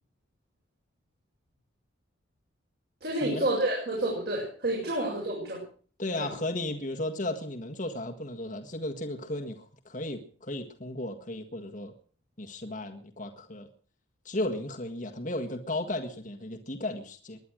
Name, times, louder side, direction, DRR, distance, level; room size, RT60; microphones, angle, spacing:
voice 1, 3.0-5.6 6.2-6.3, right 1 dB, 55° right, 6.8 m, -29 dB
voice 2, 6.0-11.9 12.4-13.7 14.3-17.4, left 1 dB, 40° left, 1.7 m, -35 dB
20.5 x 11.0 x 6.4 m
head